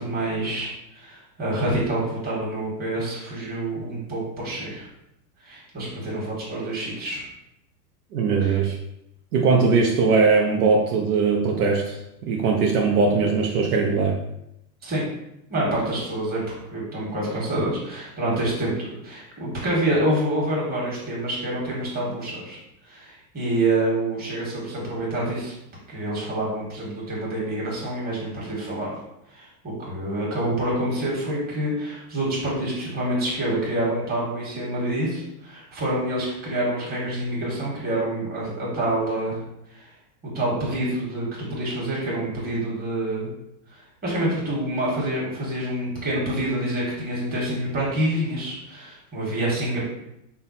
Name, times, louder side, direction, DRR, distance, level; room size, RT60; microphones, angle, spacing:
voice 1, 0.0-4.9 5.4-7.2 8.4-8.6 14.8-15.1 15.5-16.4 16.7-22.6 22.8-25.6 25.9-29.0 29.3-39.4 39.7-39.9 40.2-43.3 43.7-49.8, right 1 dB, 20° right, -6 dB, 1.7 m, -27 dB
voice 2, 8.1-8.8 9.3-14.2, right 4 dB, 65° right, 0 dB, 0.8 m, -20 dB
5.4 x 2.3 x 4.2 m, 0.83 s
supercardioid pair, 150°, 48 cm